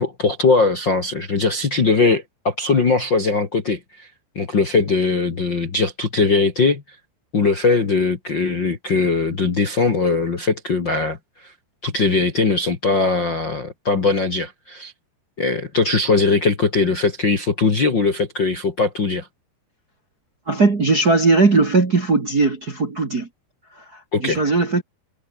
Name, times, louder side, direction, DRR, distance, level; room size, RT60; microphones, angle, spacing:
voice 1, 0.0-4.1 4.4-6.8 7.3-11.5 11.8-14.9 15.4-19.3 24.1-24.4, left 4 dB, 35° left, 1.9 m, -20 dB
voice 2, 20.5-23.3 23.8-24.8, right 3 dB, 30° right, 2.0 m, -18 dB
omnidirectional pair, 5.0 m